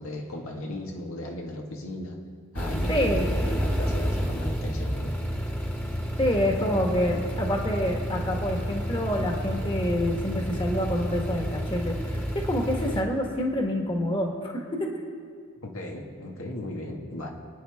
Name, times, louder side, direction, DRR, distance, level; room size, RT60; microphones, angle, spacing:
voice 1, 0.0-2.2 2.5-5.1 15.6-17.3, left 1 dB, 85° left, 0 dB, 1.8 m, -36 dB
sound 1, 2.6-13.0, equal, 10° left, 1.4 m, -30 dB
voice 2, 2.9-3.3 6.2-14.9, equal, 25° left, 1 dB, 1.5 m, -27 dB
29.0 x 9.7 x 3.6 m, 2.2 s
head